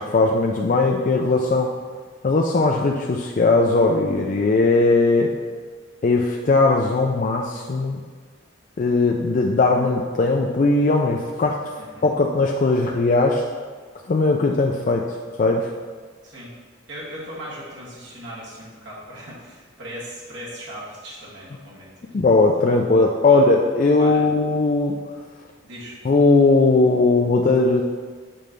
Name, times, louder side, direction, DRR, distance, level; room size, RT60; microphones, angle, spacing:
voice 1, 0.0-1.7 2.2-5.3 6.0-8.0 8.8-11.6 12.0-13.4 14.1-15.0 15.4-15.7 22.1-25.0 26.0-27.8, left 3 dB, 40° left, 0 dB, 0.4 m, -18 dB
voice 2, 16.9-22.1 23.3-23.4 24.0-24.2 25.6-26.0, right 1 dB, 65° right, -6 dB, 1.8 m, -38 dB
6.9 x 3.2 x 5.2 m, 1.5 s
head